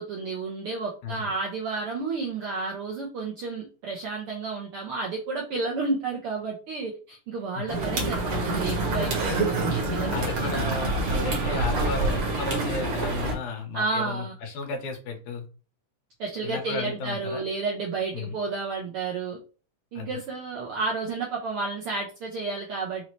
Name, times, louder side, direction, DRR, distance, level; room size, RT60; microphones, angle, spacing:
voice 1, 0.0-10.2 13.7-14.3 16.2-19.4 19.9-23.1, right 4 dB, 70° right, -2 dB, 1.3 m, -31 dB
sound 1, 7.7-13.3, right 2 dB, 55° right, 1.8 m, -26 dB
voice 2, 10.1-15.5 16.4-17.4 18.1-18.4 20.0-20.2, left 3 dB, 75° left, 3 dB, 2.4 m, -34 dB
5.6 x 2.7 x 3.0 m, 0.35 s
omnidirectional pair, 3.6 m